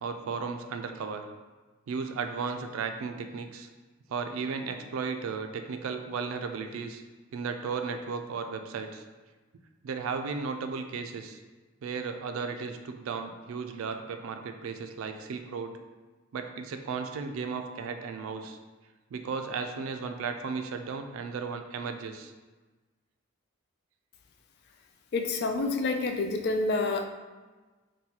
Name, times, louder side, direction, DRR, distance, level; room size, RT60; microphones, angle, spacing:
voice 1, 0.0-1.2 1.9-3.7 4.1-7.0 7.3-9.0 9.8-11.4 11.8-15.7 16.3-18.6 19.1-22.3, right 5 dB, 80° right, 6 dB, 0.3 m, -35 dB
voice 2, 25.1-27.0, left 3 dB, 50° left, 5 dB, 0.3 m, -28 dB
2.9 x 2.2 x 3.9 m, 1.3 s
head